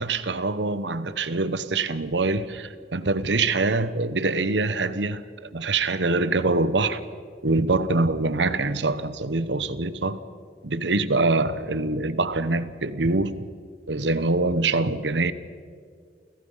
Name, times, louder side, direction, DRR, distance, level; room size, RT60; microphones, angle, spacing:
voice 1, 0.0-7.0 7.4-10.2 10.6-13.5 13.9-15.3, right 3 dB, 90° right, 1.0 m, -24 dB
29.5 x 16.5 x 5.6 m
head